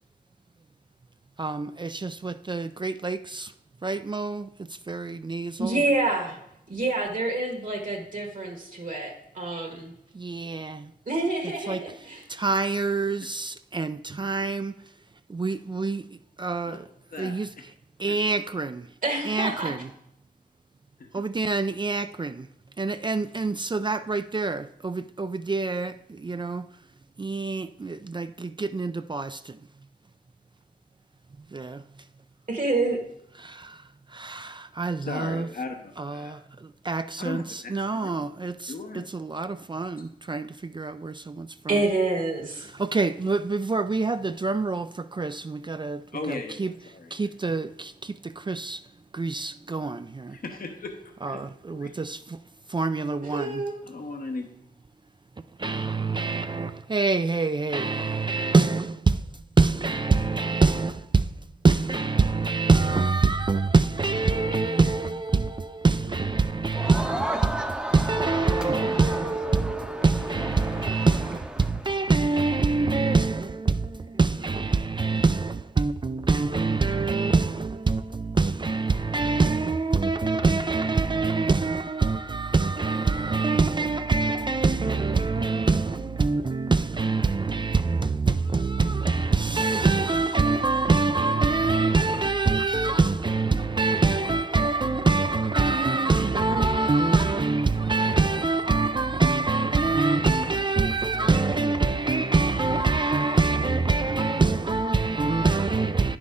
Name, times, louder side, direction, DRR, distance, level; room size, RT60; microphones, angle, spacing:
voice 1, 1.4-3.5 3.8-5.8 10.1-10.9 11.7-11.8 12.3-14.8 15.3-16.9 17.2-17.5 18.0-18.9 19.2-19.9 21.1-22.5 22.8-26.6 27.2-29.7 31.4-31.8 33.4-35.5 36.0-41.8 42.6-46.7 47.1-48.8 49.1-50.4 51.2-52.4 52.7-53.6 55.6-67.6 67.9-106.2, right 3 dB, 30° right, 0.3 m, -25 dB
voice 2, 5.6-6.4 6.7-9.9 11.1-12.2 19.0-19.7 32.5-33.0 41.7-42.7 53.3-53.7, right 2 dB, 55° right, 1.5 m, -27 dB
voice 3, 17.1-17.5 18.1-18.2 21.0-21.1 35.0-36.4 37.2-38.3 38.7-39.1 46.1-47.1 50.3-50.9 51.2-51.4 51.7-51.9 53.9-54.5, left 3 dB, 65° left, 0.9 m, -37 dB
Crowd, 66.7-72.0, right 1 dB, 5° right, 0.7 m, -33 dB
9.7 x 6.1 x 3.7 m
wide cardioid pair, 60°, 16 cm